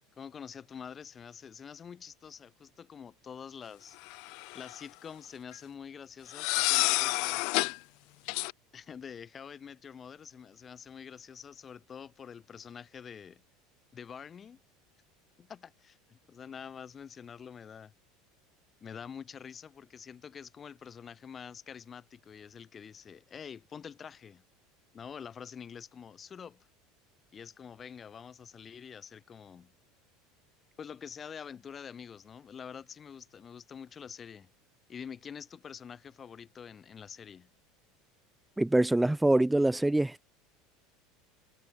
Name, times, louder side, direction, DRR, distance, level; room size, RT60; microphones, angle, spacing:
voice 1, 0.2-4.0 4.5-7.5 8.7-13.4 13.9-14.6 15.4-17.9 18.8-24.4 24.9-26.7 27.3-29.7 30.8-34.5 34.9-37.5, left 7 dB, 35° left, 6.3 m, -46 dB
sound 1, 4.1-4.8 6.3-7.8 8.3-8.5, left 31 dB, 65° left, 0.4 m, -29 dB
voice 2, 38.6-40.3, right 1 dB, 5° right, 0.6 m, -25 dB
hypercardioid pair, 80°, 0 cm